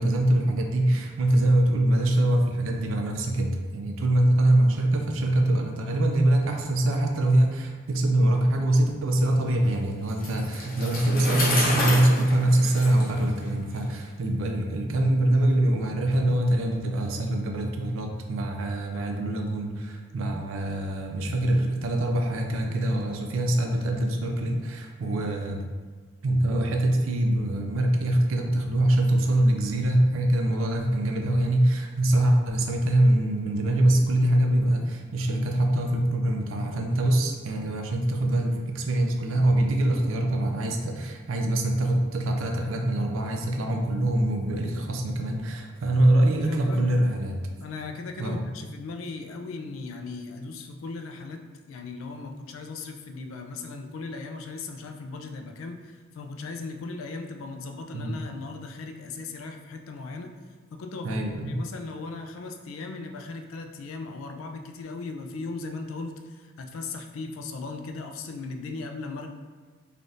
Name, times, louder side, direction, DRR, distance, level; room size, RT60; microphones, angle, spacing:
voice 1, 0.0-25.6 26.2-47.3 48.2-48.4 57.9-58.1 61.0-61.5, right 1 dB, 80° right, 3 dB, 0.4 m, -24 dB
Bicycle, 10.1-13.9, left 1 dB, 45° left, 0.8 m, -30 dB
voice 2, 46.5-46.9 47.6-60.3 60.7-61.2 61.4-69.3, left 3 dB, 85° left, 4 dB, 0.3 m, -37 dB
3.3 x 2.4 x 2.6 m, 1.4 s
head